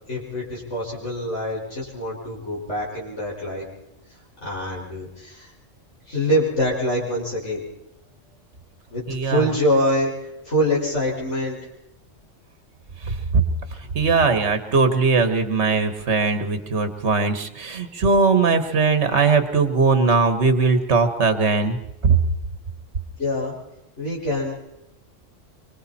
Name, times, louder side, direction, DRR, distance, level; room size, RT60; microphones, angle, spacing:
voice 1, 0.1-3.7 4.4-5.5 6.1-7.6 8.9-10.1 10.4-11.7 23.2-23.5 24.0-24.6, equal, 65° left, -5 dB, 5.8 m, -25 dB
voice 2, 9.1-9.5 13.1-13.2 14.0-21.8 22.1-22.2, right 4 dB, 60° right, 9 dB, 1.8 m, -20 dB
25.5 x 24.0 x 4.3 m, 0.87 s
omnidirectional pair, 1.3 m